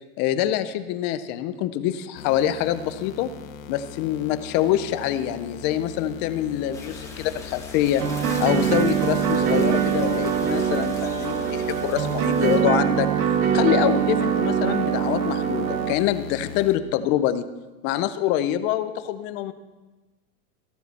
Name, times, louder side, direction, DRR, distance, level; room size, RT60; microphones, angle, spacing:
voice 1, 0.2-3.3 3.7-8.0 8.4-13.1 13.5-17.4 17.8-19.5, left 12 dB, 25° left, 12 dB, 0.4 m, -25 dB
sound 1, 2.2-16.8, left 7 dB, 60° left, 1.3 m, -40 dB
sound 2, 6.7-12.6, left 3 dB, 5° left, 1.6 m, -42 dB
sound 3, 8.0-15.9, right 8 dB, 70° right, 1.5 m, -23 dB
14.0 x 13.5 x 4.1 m, 1.2 s
supercardioid pair, 150°, 44 cm